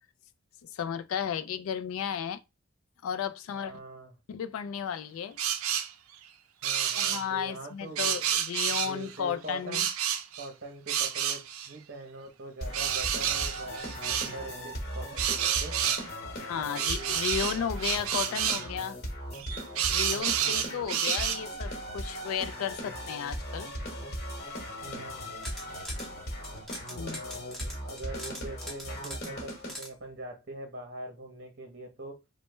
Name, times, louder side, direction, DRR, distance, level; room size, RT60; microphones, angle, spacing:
voice 1, 0.6-2.4 3.0-3.8 4.3-5.4 7.0-9.9 16.3-19.0 19.9-23.7 26.9-27.2, left 8 dB, 75° left, 0.3 m, -34 dB
voice 2, 3.5-4.1 6.6-8.3 8.7-9.8 10.4-15.8 16.5-17.2 20.1-20.6 24.8-25.3 27.0-32.2, right 2 dB, 45° right, 0.7 m, -43 dB
sound 1, 5.4-5.9 6.6-7.3 8.0-9.2 9.7-10.5 10.9-11.7 12.7-14.3 15.2-16.1 16.8-18.7 19.3-21.4, right 9 dB, 80° right, 0.4 m, -29 dB
sound 2, 12.6-29.7, equal, 50° left, 1.1 m, -38 dB
sound 3, 25.2-26.1 26.4-29.9, left 1 dB, ahead, 0.7 m, -42 dB
3.0 x 2.1 x 3.2 m
head